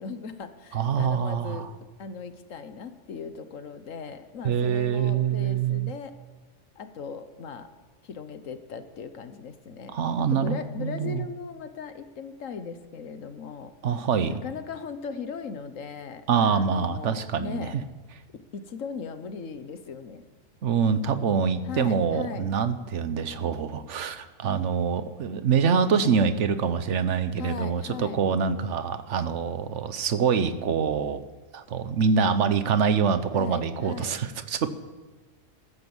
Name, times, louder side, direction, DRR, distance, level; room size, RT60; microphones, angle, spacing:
voice 1, 0.0-1.7 2.0-6.2 6.7-7.7 8.0-10.0 10.3-13.8 14.3-17.7 18.3-20.2 21.6-22.5 27.4-28.2 33.3-34.2, left 6 dB, 80° left, 10 dB, 1.5 m, -38 dB
voice 2, 0.7-1.7 4.4-5.9 9.9-11.2 13.8-14.3 16.3-17.8 20.6-31.2 31.5-34.7, right 6 dB, 70° right, 12 dB, 1.2 m, -25 dB
14.0 x 13.5 x 7.2 m, 1.3 s
omnidirectional pair, 1.3 m